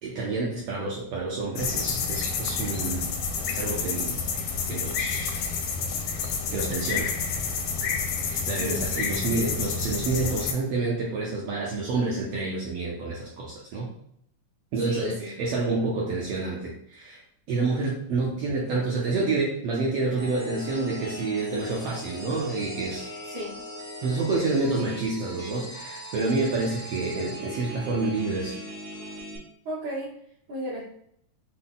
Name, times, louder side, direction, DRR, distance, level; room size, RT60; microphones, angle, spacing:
voice 1, 0.0-3.1 3.4-4.2 4.7-5.4 6.5-7.1 8.3-13.9 14.7-17.2 17.5-23.1 24.0-28.6, right 3 dB, 80° right, -3 dB, 1.4 m, -28 dB
sound 1, 1.5-10.5, left 5 dB, 90° left, 2.3 m, -29 dB
voice 2, 14.7-15.3 23.2-23.5 29.6-30.1 30.5-30.8, equal, 65° right, -11 dB, 2.9 m, -33 dB
sound 2, 20.2-29.4, equal, 30° right, 0.9 m, -39 dB
5.9 x 2.2 x 3.8 m, 0.70 s
omnidirectional pair, 3.7 m